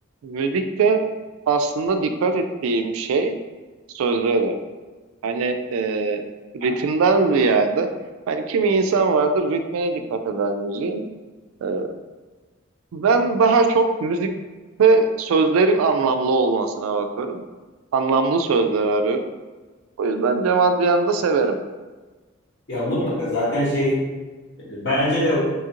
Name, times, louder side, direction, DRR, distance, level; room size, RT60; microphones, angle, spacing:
voice 1, 0.2-1.0 1.5-3.4 3.9-4.5 5.2-6.2 6.5-7.9 8.3-11.1 11.6-11.9 12.9-14.3 14.8-17.4 17.9-19.3 20.0-21.6, right 4 dB, 80° right, 7 dB, 0.3 m, -20 dB
voice 2, 22.7-24.0 24.7-25.5, left 1 dB, 55° left, -8 dB, 1.1 m, -22 dB
2.9 x 2.4 x 2.8 m, 1.3 s
head